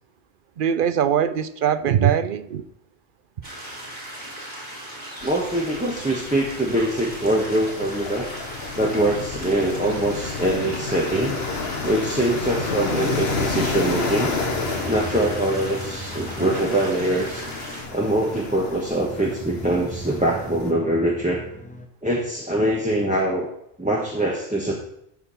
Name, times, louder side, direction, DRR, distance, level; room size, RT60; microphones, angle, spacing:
voice 1, 0.6-2.7, right 8 dB, 60° right, 0.7 m, -21 dB
sound 1, 3.4-17.8, right 1 dB, 40° right, 3.4 m, -38 dB
sound 2, 5.2-20.7, left 4 dB, 65° left, 1.5 m, -31 dB
voice 2, 5.2-8.3 8.8-11.4 11.8-14.3 14.9-17.5 17.9-21.4 22.0-23.5 23.8-24.8, right 1 dB, 5° right, 1.1 m, -23 dB
sound 3, 13.3-21.9, right 1 dB, 10° left, 0.7 m, -38 dB
13.0 x 4.5 x 5.6 m
omnidirectional pair, 1.1 m